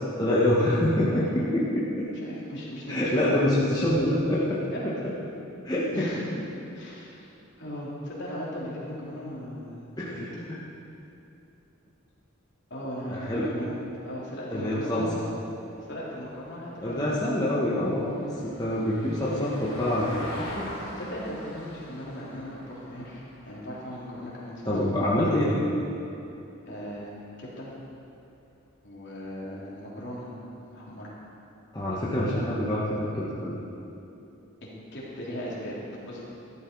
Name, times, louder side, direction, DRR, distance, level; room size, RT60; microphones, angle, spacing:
voice 1, 0.2-2.1 2.9-4.9 5.6-6.1 10.0-10.2 10.5-10.6 13.1-13.5 14.5-15.1 16.8-18.3 18.6-20.1 20.6-20.7 24.6-25.6 31.7-33.5, left 1 dB, 20° left, -8 dB, 1.4 m, -26 dB
voice 2, 1.1-1.4 2.2-3.3 4.7-4.8 5.9-6.2 6.7-7.2 7.6-10.4 12.7-15.2 15.8-17.3 21.0-24.7 26.7-27.1 27.4-27.7 28.8-31.1 34.6-35.8 36.1-36.2, equal, 55° left, -6 dB, 3.5 m, -38 dB
Vehicle, 15.4-25.4 27.7-27.8, left 1 dB, 90° left, 3.2 m, -44 dB
13.5 x 12.0 x 4.7 m, 2.8 s
head